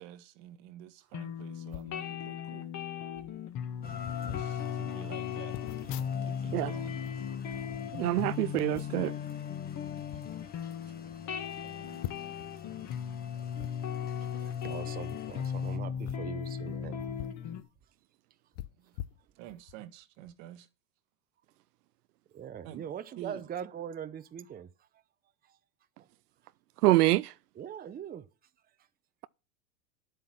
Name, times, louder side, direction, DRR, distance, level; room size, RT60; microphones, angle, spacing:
voice 1, 0.0-2.7 4.2-7.0 10.1-10.2 11.6-12.0 18.8-19.0 19.3-20.7 22.6-22.9 23.2-23.5, right 12 dB, 60° right, 1.4 m, -49 dB
sound 1, 1.1-17.6, left 8 dB, 40° left, 1.7 m, -37 dB
sound 2, 1.7-2.0 2.8-2.9 3.1-3.4 4.0-4.5 5.5-6.6 6.9-8.2 8.7-9.1 9.8-10.2 10.8-10.9 11.1-11.2 12.0-12.5 13.6-13.7 15.2-15.4 15.9-17.4 17.8-17.9 18.5-19.8 20.2-20.4, left 14 dB, 60° left, 0.8 m, -44 dB
Rain, 3.8-15.8, left 8 dB, 20° left, 1.3 m, -48 dB
voice 2, 7.9-9.1 26.8-27.3, right 18 dB, 85° right, 0.6 m, -25 dB
voice 3, 14.2-17.2 22.3-24.7 26.0-26.1 27.6-28.3, right 9 dB, 20° right, 0.8 m, -42 dB
10.5 x 7.8 x 6.0 m
hypercardioid pair, 115°, 45 cm